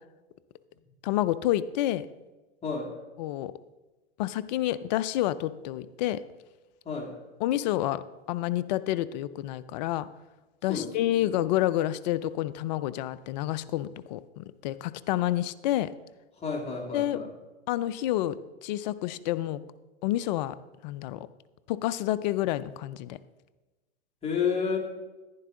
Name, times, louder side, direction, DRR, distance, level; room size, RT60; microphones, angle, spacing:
voice 1, 1.0-2.1 3.2-3.5 4.2-6.2 7.4-10.1 10.6-15.9 16.9-17.2 17.7-19.6 20.0-20.5 20.8-21.3 21.7-23.2, left 14 dB, 40° left, 15 dB, 0.4 m, -29 dB
voice 2, 2.6-2.9 6.9-7.2 10.7-11.3 16.4-17.3 24.2-24.8, left 5 dB, 20° left, 0 dB, 2.1 m, -31 dB
10.5 x 10.5 x 3.7 m, 1.2 s
hypercardioid pair, 120°, 33 cm